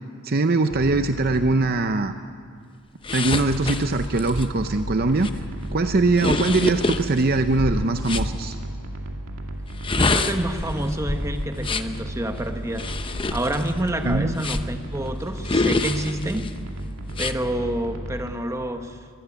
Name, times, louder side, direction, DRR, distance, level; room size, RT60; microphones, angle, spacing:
voice 1, 0.2-2.1 3.1-5.3 5.7-8.6 14.0-14.4, right 3 dB, 45° right, 9 dB, 0.6 m, -22 dB
sound 1, 0.7-1.5 3.3-18.3, right 1 dB, 65° right, 2.4 m, -34 dB
sound 2, 3.0-8.3 9.7-12.0 12.7-14.8 15.4-16.5 17.1-17.3, left 3 dB, 25° left, 0.7 m, -27 dB
voice 2, 9.9-16.5 17.2-19.0, right 1 dB, 15° right, 6 dB, 1.2 m, -28 dB
23.0 x 16.0 x 9.8 m, 2.2 s
head